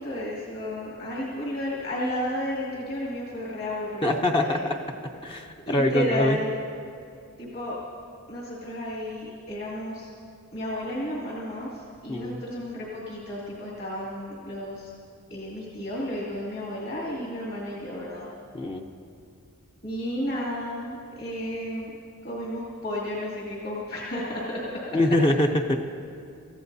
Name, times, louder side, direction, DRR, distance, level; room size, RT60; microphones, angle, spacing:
voice 1, 0.0-4.7 5.7-6.5 7.4-7.7 8.3-10.1 10.5-14.9 15.3-18.3 19.8-21.9 22.2-24.8, left 1 dB, 45° left, -5 dB, 2.5 m, -32 dB
voice 2, 4.0-4.8 5.2-6.4 12.1-12.4 18.5-18.9 24.9-25.8, left 1 dB, 25° left, 2 dB, 0.6 m, -24 dB
27.0 x 15.0 x 2.8 m, 2.4 s
head